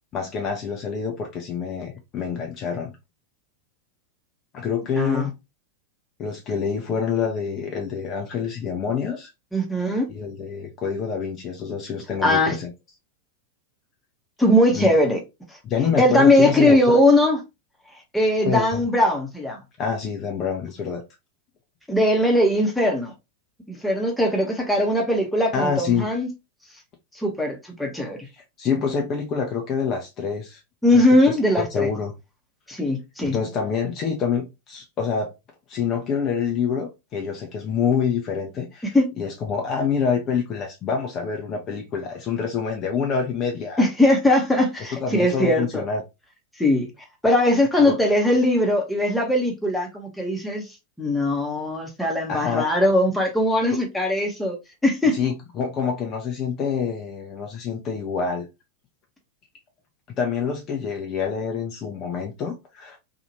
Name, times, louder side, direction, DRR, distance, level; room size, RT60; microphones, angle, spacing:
voice 1, 0.1-2.9 4.5-5.3 6.2-9.3 10.1-12.7 14.7-14.9 15.6-17.0 18.4-18.8 19.8-21.0 25.5-26.1 28.3-30.6 30.9-32.1 33.2-35.4 35.7-43.8 44.9-46.0 47.8-48.0 52.3-52.6 55.1-58.5 60.1-63.0, left 6 dB, 30° left, 0.6 m, -26 dB
voice 2, 5.0-5.3 9.5-10.1 12.2-12.6 14.4-15.2 16.0-17.4 18.1-19.6 21.9-23.1 23.7-26.3 27.1-28.2 30.8-31.9 32.7-33.4 38.9-39.0 43.8-45.8 46.6-46.9 47.2-50.6 51.0-54.6 54.8-55.1, left 1 dB, 5° left, 0.9 m, -20 dB
2.7 x 2.5 x 2.8 m
figure-of-eight pair, 90°, 0 cm